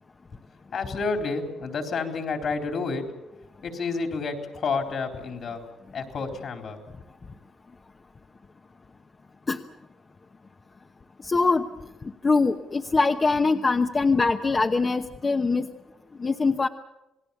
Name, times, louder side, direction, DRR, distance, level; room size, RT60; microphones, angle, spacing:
voice 1, 0.7-3.1 3.6-5.7 5.9-6.8, left 4 dB, 60° left, 5 dB, 4.0 m, -30 dB
voice 2, 11.2-11.7 12.2-15.7 16.2-16.7, left 3 dB, 30° left, 5 dB, 1.0 m, -22 dB
28.0 x 19.0 x 7.2 m, 0.98 s
cardioid pair, 90°, 0 cm